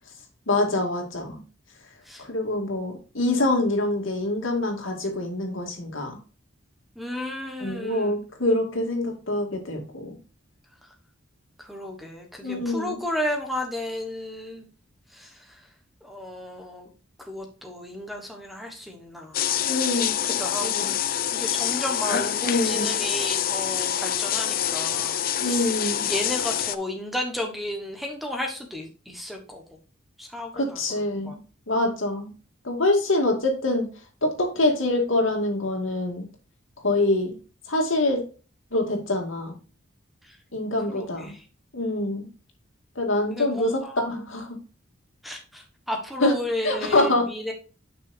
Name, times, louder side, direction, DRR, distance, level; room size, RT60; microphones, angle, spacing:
voice 1, 0.5-1.4 2.3-6.2 7.6-10.1 12.4-13.0 19.7-21.0 22.4-23.0 25.4-26.1 30.5-31.4 31.7-32.3 32.6-33.9 34.2-36.3 36.8-37.4 37.7-38.2 38.7-39.6 40.5-41.3 41.7-42.3 43.0-44.6 46.2-46.3 46.6-47.3, left 2 dB, 80° left, 2 dB, 2.4 m, -25 dB
voice 2, 7.0-8.2 11.6-14.6 15.1-15.5 16.0-16.9 17.2-19.6 20.0-20.9 21.3-25.7 26.0-29.6 30.2-31.4 40.3-40.4 40.9-41.4 43.3-44.0 45.2-47.5, left 1 dB, ahead, 3 dB, 1.3 m, -33 dB
sound 1, 19.3-26.8, left 10 dB, 45° left, 0.5 m, -26 dB
10.5 x 6.1 x 2.7 m, 0.35 s
head